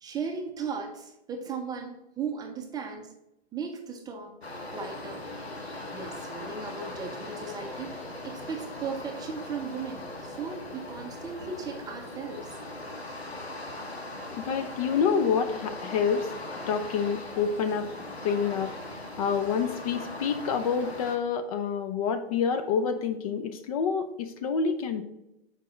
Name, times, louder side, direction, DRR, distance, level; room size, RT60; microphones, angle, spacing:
voice 1, 0.0-3.1 3.5-4.4 4.7-5.2 5.9-12.6, right 5 dB, 10° right, 4 dB, 0.6 m, -37 dB
sound 1, 4.4-21.2, left 2 dB, 85° left, 1.3 m, -40 dB
voice 2, 14.3-16.3 16.7-17.9 18.2-18.8 19.2-25.0, left 6 dB, 35° left, 8 dB, 0.5 m, -27 dB
7.4 x 5.2 x 3.1 m, 0.89 s
figure-of-eight pair, 110°, 31 cm